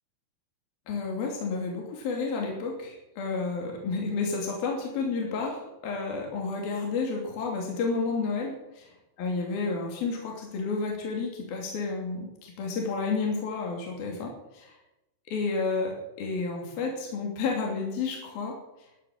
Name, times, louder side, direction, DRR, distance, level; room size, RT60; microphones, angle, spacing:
voice 1, 0.9-8.8 9.2-14.7 15.3-18.6, left 4 dB, 65° left, 0 dB, 4.7 m, -31 dB
13.0 x 11.5 x 8.9 m, 0.92 s
omnidirectional pair, 4.7 m